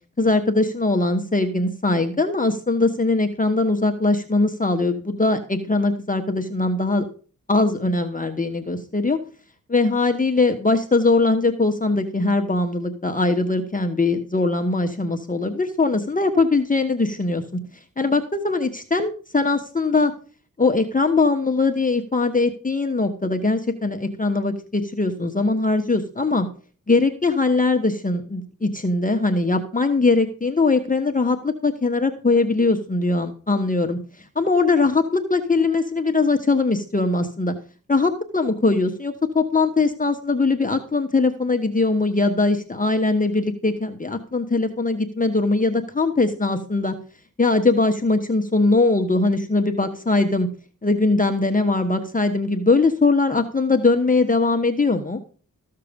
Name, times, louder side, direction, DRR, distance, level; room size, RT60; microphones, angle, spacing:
voice 1, 0.2-7.0 7.5-9.2 9.7-17.6 18.0-20.1 20.6-26.5 26.9-34.0 34.3-37.5 37.9-46.9 47.4-50.5 50.8-55.2, left 3 dB, 25° left, 5 dB, 1.2 m, -21 dB
14.5 x 6.7 x 5.2 m, 0.38 s
cardioid pair, 70°, 34 cm